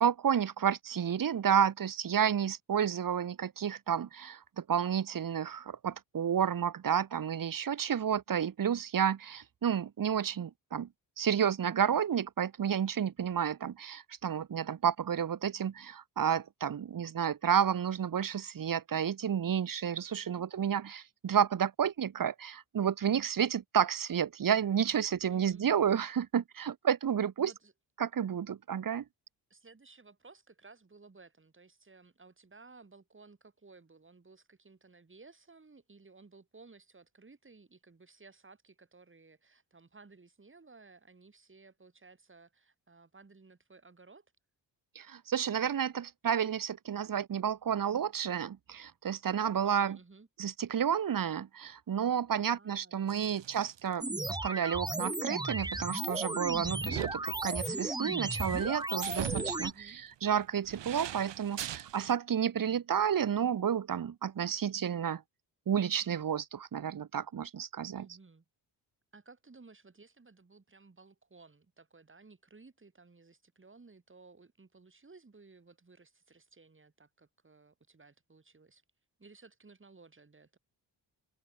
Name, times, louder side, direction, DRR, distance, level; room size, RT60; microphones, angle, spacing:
voice 1, 0.0-10.9 11.2-27.5 28.0-29.0 44.9-50.0 50.4-65.2 65.7-68.1, right 8 dB, 45° right, 1.4 m, -31 dB
voice 2, 20.1-20.5 25.3-25.7 27.4-27.7 29.5-44.3 49.6-50.3 52.4-53.5 59.6-60.0 68.0-68.4 69.1-78.8 79.2-80.6, right 3 dB, 25° right, 6.5 m, -57 dB
sound 1, 53.1-53.9 54.2-54.3 55.6-62.1, right 11 dB, 75° right, 2.5 m, -42 dB
sound 2, 54.0-59.7, right 2 dB, 10° right, 0.8 m, -35 dB
open air
cardioid pair, 75°, 44 cm